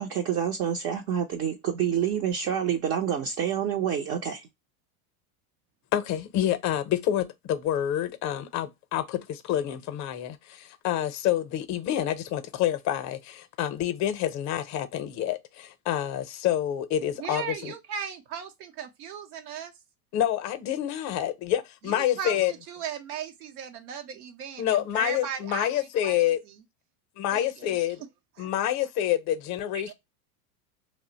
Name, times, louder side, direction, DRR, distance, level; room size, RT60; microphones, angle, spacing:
voice 1, 0.0-4.5, right 9 dB, 35° right, 0.4 m, -28 dB
voice 2, 5.9-17.7 20.1-22.5 24.6-26.4 27.2-28.0 28.4-29.9, left 11 dB, 40° left, 0.5 m, -28 dB
voice 3, 17.2-19.7 21.9-25.7 26.0-26.3 27.3-27.5 28.4-28.5 29.9-30.0, right 7 dB, 80° right, 0.7 m, -37 dB
2.4 x 2.1 x 3.8 m
supercardioid pair, 110°, 44 cm